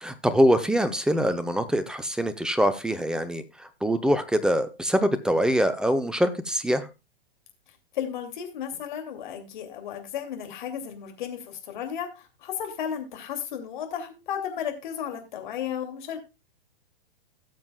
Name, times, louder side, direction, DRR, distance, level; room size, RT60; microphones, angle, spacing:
voice 1, 0.0-6.9, equal, ahead, 11 dB, 0.8 m, -24 dB
voice 2, 7.9-16.2, left 9 dB, 55° left, 5 dB, 2.7 m, -34 dB
17.5 x 7.3 x 2.4 m, 0.26 s
figure-of-eight pair, 110°, 30 cm